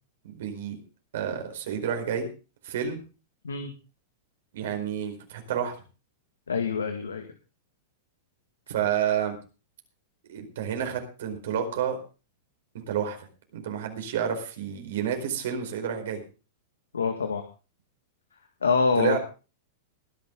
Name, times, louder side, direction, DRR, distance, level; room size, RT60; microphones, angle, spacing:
voice 1, 0.2-0.8 1.1-2.3 2.6-3.0 4.5-5.7 8.7-9.4 10.3-12.0 12.9-13.2 13.5-16.2 19.0-19.2, right 8 dB, 70° right, 4 dB, 4.6 m, -29 dB
voice 2, 6.5-7.3 16.9-17.4 18.6-19.2, left 5 dB, 85° left, 6 dB, 1.9 m, -25 dB
20.5 x 11.0 x 3.8 m, 0.34 s
hypercardioid pair, 105°, 0 cm